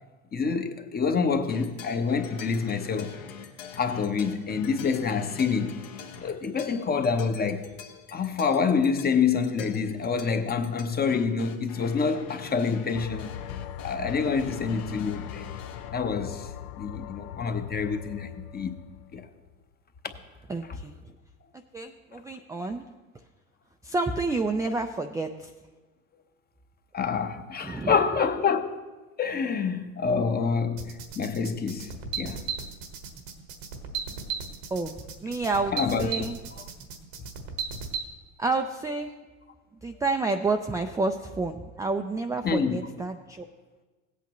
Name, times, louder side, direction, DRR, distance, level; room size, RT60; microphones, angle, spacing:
voice 1, 0.3-3.1 3.8-5.8 6.2-7.7 8.1-13.3 13.8-15.5 15.9-16.5 16.8-18.8 19.1-19.3 26.9-28.8 29.2-32.5 35.7-36.1 42.4-42.8, left 5 dB, 25° left, 0.9 m, -27 dB
sound 1, 1.5-15.9, left 7 dB, 65° left, 1.3 m, -45 dB
sound 2, 12.9-19.6, left 10 dB, 80° left, 0.6 m, -40 dB
voice 2, 20.5-21.1 21.7-22.8 23.8-25.5 27.6-28.0 34.7-35.0 35.2-36.4 38.4-39.1 39.8-43.4, right 3 dB, 10° right, 0.4 m, -29 dB
sound 3, 30.8-38.0, right 6 dB, 80° right, 1.4 m, -35 dB
16.5 x 8.3 x 3.1 m
supercardioid pair, 95°, 38 cm